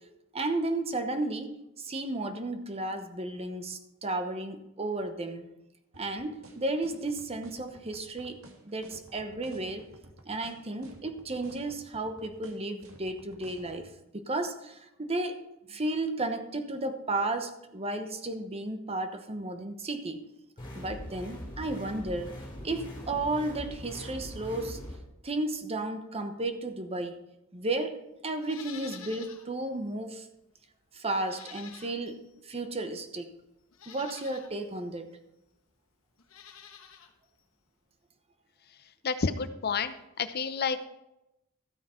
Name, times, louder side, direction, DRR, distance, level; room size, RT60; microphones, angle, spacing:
voice 1, 0.3-5.5 6.0-9.9 10.3-13.9 14.1-15.4 15.7-20.2 20.7-22.3 22.6-24.8 25.2-27.2 27.5-30.3 30.9-33.3 33.9-35.2, right 2 dB, 30° right, 1.0 m, -33 dB
sound 1, 5.9-13.8, right 1 dB, 90° right, 1.8 m, -52 dB
sound 2, 20.6-25.0, left 1 dB, 25° left, 3.6 m, -42 dB
Livestock farm animals working animals, 28.4-29.5 29.9-30.0 31.2-32.3 33.1-33.2 33.7-34.5 36.2-37.1 37.4-37.5, left 8 dB, 80° left, 1.4 m, -48 dB
voice 2, 39.0-40.8, left 5 dB, 50° left, 0.6 m, -30 dB
13.0 x 9.1 x 4.4 m
head